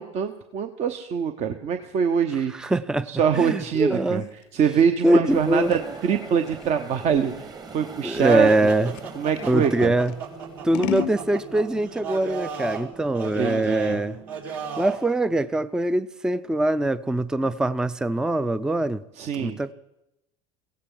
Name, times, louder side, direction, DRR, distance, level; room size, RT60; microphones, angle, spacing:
voice 1, 0.0-2.7 3.1-4.2 4.5-8.5 9.2-9.9 13.2-14.0 19.2-19.6, right 7 dB, 45° right, 7 dB, 1.0 m, -24 dB
voice 2, 2.5-4.3 5.0-5.7 8.0-8.9 9.4-10.2 10.6-14.2 14.8-19.0 19.4-19.7, right 1 dB, 5° right, 16 dB, 0.5 m, -23 dB
Scissors, 3.3-9.5 10.1-11.2, left 16 dB, 65° left, 0.6 m, -36 dB
sound 1, 5.3-11.9, right 4 dB, 25° right, 1.4 m, -41 dB
sound 2, 8.3-15.1, right 6 dB, 60° right, 4.2 m, -35 dB
23.5 x 16.0 x 3.8 m, 0.90 s
hypercardioid pair, 85°, 16 cm